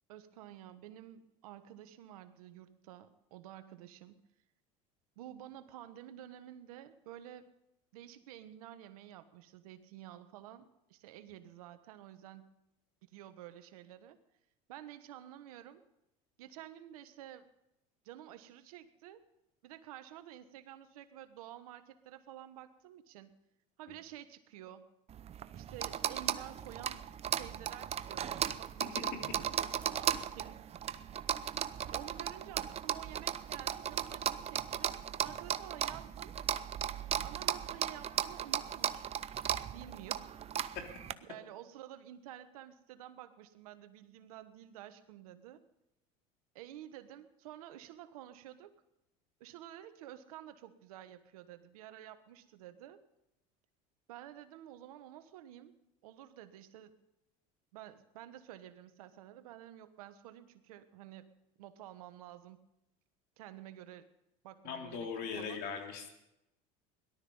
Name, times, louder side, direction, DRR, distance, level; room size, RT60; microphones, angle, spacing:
voice 1, 0.1-4.2 5.2-7.5 7.9-12.5 13.1-14.2 14.7-15.8 16.4-17.5 18.0-19.2 19.6-23.4 23.8-24.9 25.5-27.0 27.3-31.1 31.9-36.4 37.2-39.1 39.7-40.3 41.2-45.6 46.5-48.8 49.4-53.0 54.1-56.9 57.7-61.3 61.6-62.6 63.4-64.1 64.4-65.1 65.4-65.6, right 12 dB, 90° right, 11 dB, 1.3 m, -51 dB
sound 1, 25.1-41.1, right 9 dB, 35° right, 0.7 m, -36 dB
voice 2, 64.6-66.1, left 6 dB, 60° left, 3 dB, 3.4 m, -39 dB
18.0 x 12.5 x 5.5 m, 0.87 s
supercardioid pair, 100°, 18 cm